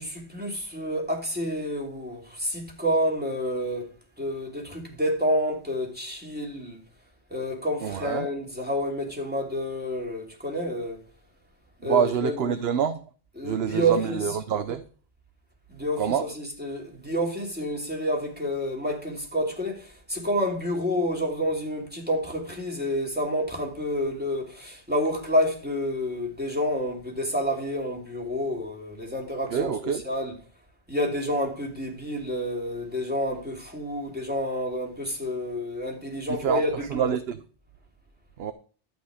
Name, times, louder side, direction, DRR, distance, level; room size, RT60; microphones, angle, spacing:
voice 1, 0.0-3.9 4.2-6.8 7.3-11.0 11.8-12.6 13.3-14.4 15.7-30.4 30.9-37.1, equal, 10° right, 2.8 m, -29 dB
voice 2, 7.8-8.3 11.8-13.0 13.4-14.8 16.0-16.2 29.5-30.0 36.3-36.6 36.9-37.4 38.4-38.5, right 7 dB, 75° right, 1.0 m, -26 dB
12.0 x 8.3 x 4.9 m
omnidirectional pair, 1.0 m